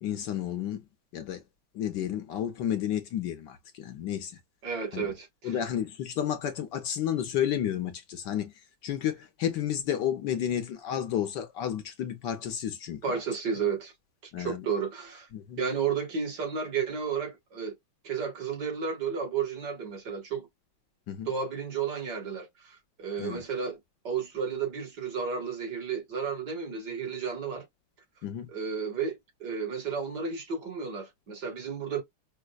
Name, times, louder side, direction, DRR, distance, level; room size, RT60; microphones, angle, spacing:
voice 1, 0.0-0.8 1.1-1.4 1.7-4.3 4.9-5.1 5.4-8.5 8.8-13.0 14.3-14.6 15.3-15.6 21.1-21.3 23.2-23.4 28.2-28.5, left 10 dB, 65° left, 1.3 m, -31 dB
voice 2, 4.6-5.6 13.0-13.9 14.4-15.3 15.6-17.8 18.0-20.5 21.3-23.8 24.0-27.7 28.5-32.0, right 6 dB, 55° right, 2.2 m, -32 dB
5.1 x 2.0 x 2.3 m
omnidirectional pair, 2.2 m